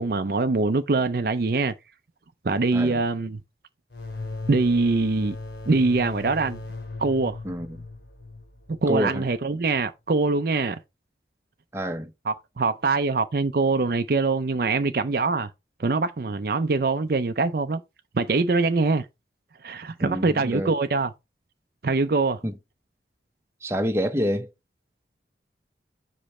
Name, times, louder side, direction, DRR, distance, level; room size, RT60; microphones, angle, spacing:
voice 1, 0.0-1.7 2.4-3.4 4.5-5.4 5.7-6.6 7.0-7.4 8.7-10.8 12.3-15.5 15.8-17.8 18.1-19.0 19.6-21.1 21.8-22.4, right 3 dB, 55° right, 0.5 m, -23 dB
sound 1, 3.9-9.3, left 3 dB, 70° left, 2.5 m, -38 dB
voice 2, 7.4-7.8 8.9-9.3 11.7-12.1 20.0-20.7 22.4-22.5 23.6-24.5, equal, 15° right, 0.8 m, -27 dB
6.6 x 5.1 x 4.2 m
head